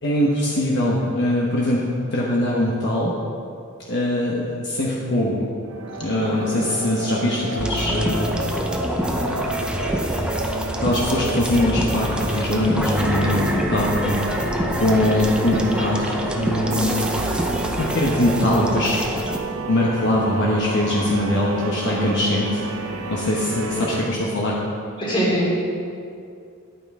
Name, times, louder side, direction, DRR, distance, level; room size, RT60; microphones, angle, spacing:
voice 1, 0.0-1.8 2.1-3.1 3.9-5.4 6.0-8.5 9.1-9.5 10.8-14.4 14.8-16.9 17.8-19.0 19.7-22.6 23.1-24.6, left 1 dB, 55° left, -4 dB, 1.1 m, -22 dB
sound 1, 5.7-24.1, right 2 dB, 80° right, 0.7 m, -31 dB
sound 2, 7.6-19.4, equal, 5° right, 0.6 m, -26 dB
voice 2, 25.0-25.6, equal, 25° left, -6 dB, 2.8 m, -22 dB
11.0 x 9.0 x 3.7 m, 2.4 s
head